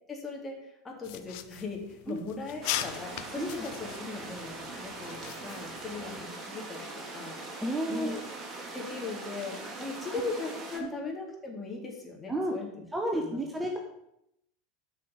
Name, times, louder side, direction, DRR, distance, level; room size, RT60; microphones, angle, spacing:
voice 1, 0.1-7.4 7.9-8.2 8.7-12.7 13.1-13.4, left 3 dB, 20° left, -1 dB, 3.4 m, -39 dB
sound 1, 1.0-6.2, left 13 dB, 55° left, 0.7 m, -40 dB
sound 2, 2.6-10.8, right 2 dB, 25° right, 2.6 m, -41 dB
voice 2, 7.6-8.2 10.8-10.9 12.3-12.5 12.9-13.8, right 1 dB, 10° right, 1 dB, 1.4 m, -31 dB
9.0 x 5.7 x 8.2 m, 0.81 s
figure-of-eight pair, 80°, 0 cm